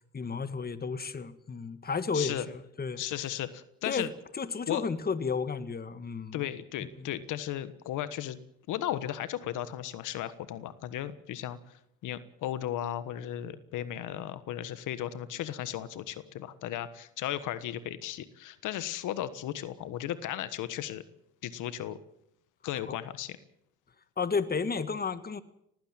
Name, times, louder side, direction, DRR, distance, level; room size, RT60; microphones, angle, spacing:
voice 1, 0.0-3.0 3.8-6.4 7.0-7.1 22.9-23.0 24.2-25.4, left 5 dB, 30° left, 13 dB, 1.7 m, -33 dB
voice 2, 2.1-2.5 3.0-4.1 4.7-4.8 6.3-8.4 8.7-21.0 21.4-22.0 22.6-23.4, left 12 dB, 85° left, 14 dB, 1.4 m, -35 dB
19.5 x 16.0 x 8.9 m, 0.76 s
cardioid pair, 90°, 30 cm